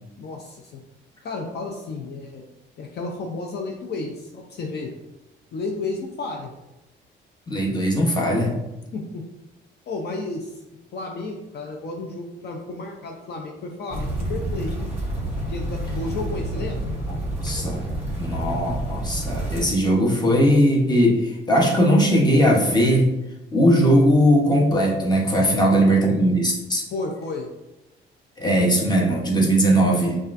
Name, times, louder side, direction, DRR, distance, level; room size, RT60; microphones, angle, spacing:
voice 1, 0.2-0.8 1.2-2.4 2.8-4.9 5.5-6.5 8.9-9.2 9.9-10.6 10.9-14.9 15.4-16.9 25.5-25.9 26.9-27.5, left 3 dB, 55° left, 1 dB, 0.5 m, -32 dB
voice 2, 7.5-8.5 17.4-17.8 18.2-23.1 23.5-26.8 28.4-30.2, equal, 20° left, -1 dB, 1.0 m, -19 dB
sound 1, 13.9-19.6, right 1 dB, 10° right, 1.5 m, -28 dB
5.4 x 2.4 x 2.5 m, 0.98 s
cardioid pair, 90°, 20 cm